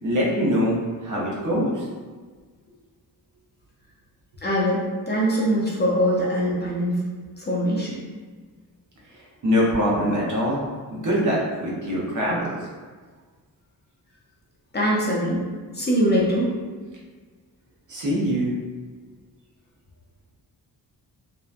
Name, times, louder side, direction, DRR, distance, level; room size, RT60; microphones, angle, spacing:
voice 1, 0.0-1.8 9.4-10.6 10.9-12.6 17.9-18.5, equal, 55° right, -5 dB, 0.7 m, -23 dB
voice 2, 4.4-7.0 7.4-8.0 14.7-15.4 15.7-16.5, equal, 30° left, -5 dB, 0.4 m, -22 dB
2.7 x 2.2 x 2.4 m, 1.4 s
wide cardioid pair, 155°, 37 cm